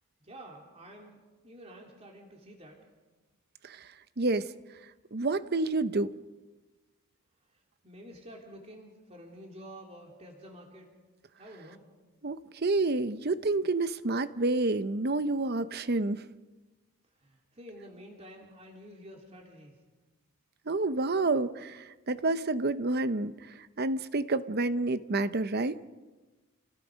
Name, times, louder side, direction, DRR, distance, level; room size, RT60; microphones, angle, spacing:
voice 1, 0.2-2.8 7.5-10.9 11.4-11.8 17.2-19.8, equal, 30° right, -1 dB, 3.2 m, -49 dB
voice 2, 4.2-4.5 5.1-6.1 12.2-16.3 20.7-23.3 23.8-25.8, right 2 dB, 45° right, 13 dB, 0.8 m, -29 dB
29.5 x 19.0 x 5.2 m, 1.2 s
head